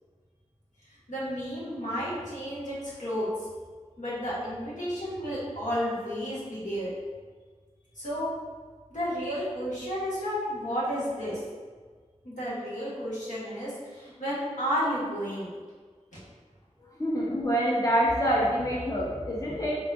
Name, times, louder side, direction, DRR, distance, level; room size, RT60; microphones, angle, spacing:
voice 1, 1.1-3.5 4.0-6.9 7.9-8.3 8.9-11.4 12.2-15.5 16.1-16.2, equal, 85° left, -9 dB, 1.4 m, -32 dB
voice 2, 17.0-19.7, equal, 30° left, -6 dB, 1.0 m, -26 dB
4.0 x 2.4 x 3.6 m, 1.5 s
wide cardioid pair, 40°, 12 cm